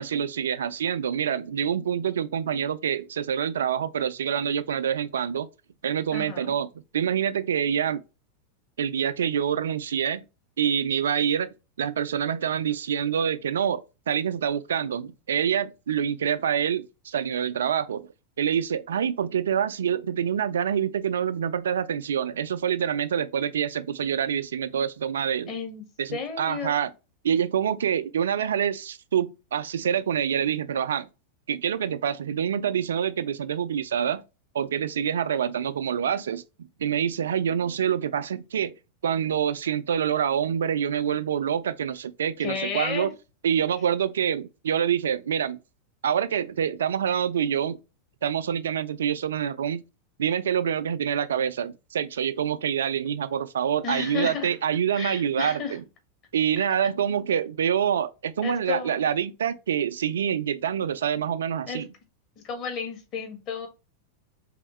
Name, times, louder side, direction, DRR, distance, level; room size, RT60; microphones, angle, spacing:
voice 1, 0.0-5.5 5.8-6.7 6.9-8.0 8.8-10.2 10.6-18.1 18.4-25.5 26.0-26.9 27.2-31.1 31.5-34.2 34.5-38.7 39.0-43.1 43.4-45.6 46.0-47.8 48.2-49.8 50.2-55.8 56.3-61.9, right 8 dB, 65° right, 0.4 m, -26 dB
voice 2, 6.1-6.6 25.5-25.8 26.1-26.7 42.4-43.1 53.8-54.5 54.9-55.7 58.4-59.0 61.7-61.8 62.4-63.7, left 6 dB, 35° left, 1.5 m, -32 dB
4.2 x 3.4 x 3.1 m
figure-of-eight pair, 90°, 0 cm